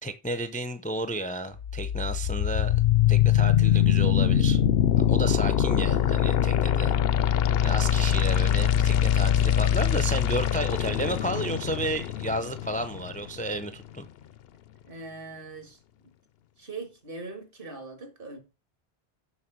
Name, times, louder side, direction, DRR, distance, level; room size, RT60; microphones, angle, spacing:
voice 1, 0.0-2.7 3.1-4.6 5.0-7.0 7.6-14.1, right 1 dB, 10° left, 0.5 m, -32 dB
sound 1, 1.6-13.6, left 10 dB, 75° left, 0.8 m, -23 dB
voice 2, 14.8-15.8 16.6-18.4, right 3 dB, 60° right, 2.2 m, -41 dB
7.1 x 5.9 x 6.1 m
omnidirectional pair, 1.0 m